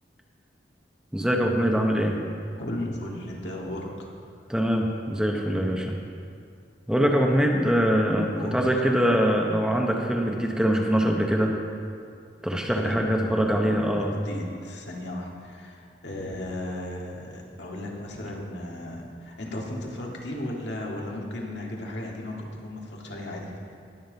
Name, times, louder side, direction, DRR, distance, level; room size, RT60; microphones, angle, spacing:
voice 1, 1.1-2.2 4.5-6.0 6.9-11.5 12.4-14.1, equal, 5° right, 1 dB, 0.9 m, -23 dB
voice 2, 2.6-4.1 8.4-8.7 12.8-13.2 13.8-23.8, left 1 dB, 85° left, -2 dB, 2.0 m, -35 dB
20.0 x 7.4 x 4.0 m, 2.4 s
head